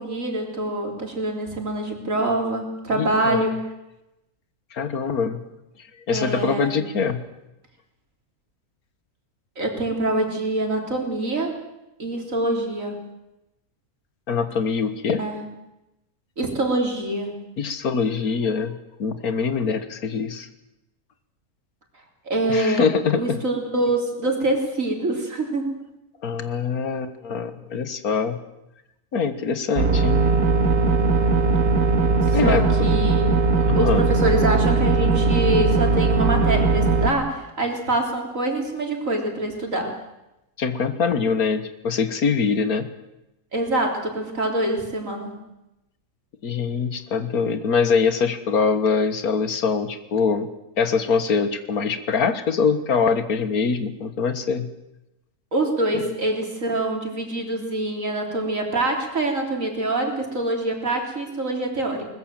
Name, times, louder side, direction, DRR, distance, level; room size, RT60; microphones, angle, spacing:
voice 1, 0.0-3.6 6.1-6.7 9.6-11.6 12.0-13.0 15.2-15.5 16.4-17.4 22.3-22.9 23.2-25.7 32.3-33.4 33.7-40.0 43.5-45.4 55.5-62.0, right 2 dB, 60° right, 2 dB, 4.0 m, -25 dB
voice 2, 2.9-3.4 4.7-5.4 6.1-7.2 14.3-15.2 17.6-20.5 22.5-23.4 26.2-28.4 29.1-30.2 32.3-32.7 33.7-34.1 40.6-42.9 46.4-50.5 50.8-54.7 55.9-56.0, left 5 dB, 80° left, 11 dB, 1.9 m, -23 dB
sound 1, 29.8-37.1, right 3 dB, 85° right, 2.2 m, -19 dB
21.5 x 20.0 x 7.5 m, 0.93 s
omnidirectional pair, 1.6 m